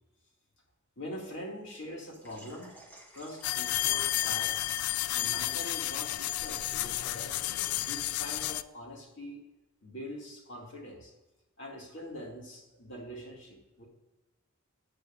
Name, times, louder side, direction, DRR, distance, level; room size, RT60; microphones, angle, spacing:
voice 1, 1.0-2.7 3.1-4.5 5.1-9.4 9.8-11.1 11.6-13.8, left 1 dB, 55° left, -1 dB, 2.5 m, -43 dB
Water / Liquid, 2.1-7.7 8.0-8.1 8.5-8.6, right 1 dB, 10° left, 1.3 m, -52 dB
sound 1, 3.4-8.6, left 15 dB, 80° left, 0.3 m, -31 dB
14.5 x 8.4 x 2.6 m, 1.1 s
head